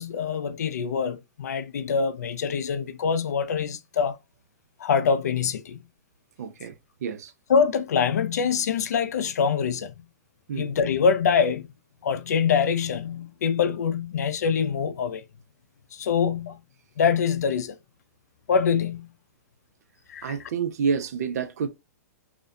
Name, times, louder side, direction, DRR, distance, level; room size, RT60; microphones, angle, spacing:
voice 1, 0.0-4.2 4.8-5.8 7.5-10.1 10.6-11.7 12.0-15.2 15.9-16.6 17.0-17.8 18.5-19.1 20.1-20.4, left 6 dB, 80° left, 0.4 m, -24 dB
voice 2, 6.4-6.7 7.0-7.3 10.5-10.7 20.2-21.7, right 6 dB, 70° right, 0.5 m, -28 dB
2.4 x 2.2 x 2.5 m
hypercardioid pair, 130°, 9 cm